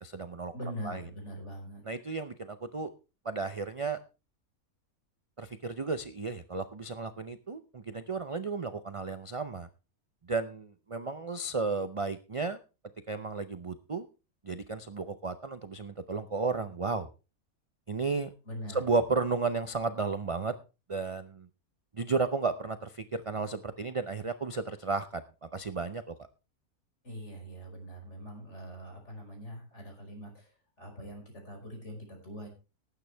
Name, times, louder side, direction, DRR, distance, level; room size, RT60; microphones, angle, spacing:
voice 1, 0.0-0.5 0.8-1.0 1.9-2.9 3.2-4.0 5.4-9.7 10.3-12.6 13.1-14.1 14.4-17.1 17.9-18.3 18.7-20.5 20.9-21.5 21.9-26.1, right 4 dB, 50° right, 10 dB, 0.4 m, -33 dB
voice 2, 0.5-1.8 18.5-18.8 27.0-32.5, equal, 50° left, 1 dB, 5.4 m, -43 dB
18.5 x 9.1 x 3.4 m, 0.31 s
omnidirectional pair, 1.6 m